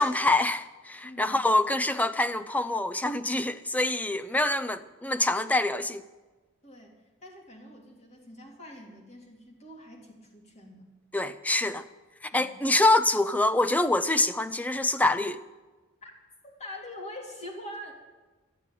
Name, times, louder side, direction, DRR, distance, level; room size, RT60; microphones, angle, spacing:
voice 1, 0.0-6.0 11.1-11.8 12.2-15.4, left 2 dB, 10° left, 0.5 m, -25 dB
voice 2, 1.0-1.4 6.6-10.8 12.3-12.5 16.0-16.1 16.4-17.9, left 1 dB, 35° left, 3.0 m, -44 dB
13.0 x 9.1 x 9.3 m
head